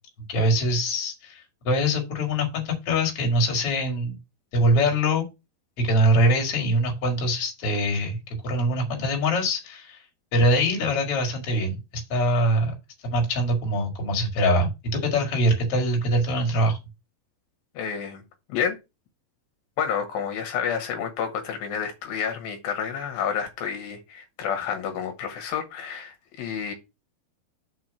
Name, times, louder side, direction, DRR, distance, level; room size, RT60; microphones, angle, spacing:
voice 1, 0.3-4.2 4.5-5.2 5.8-10.0 10.3-12.7 13.0-16.8, equal, 45° left, 2.7 m, -23 dB
voice 2, 17.7-18.2 18.5-18.8 19.8-26.7, left 7 dB, 75° left, 2.9 m, -29 dB
6.3 x 4.7 x 5.8 m
omnidirectional pair, 4.3 m